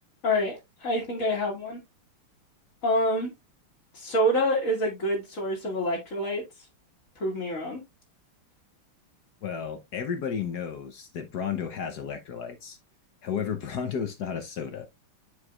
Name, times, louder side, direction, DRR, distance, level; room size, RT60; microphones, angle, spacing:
voice 1, 0.2-1.8 2.8-3.3 3.9-6.4 7.2-7.8, equal, 40° left, 1.9 m, -27 dB
voice 2, 9.4-12.8 13.2-14.9, left 7 dB, 60° left, 1.2 m, -33 dB
9.7 x 4.6 x 2.3 m
omnidirectional pair, 2.4 m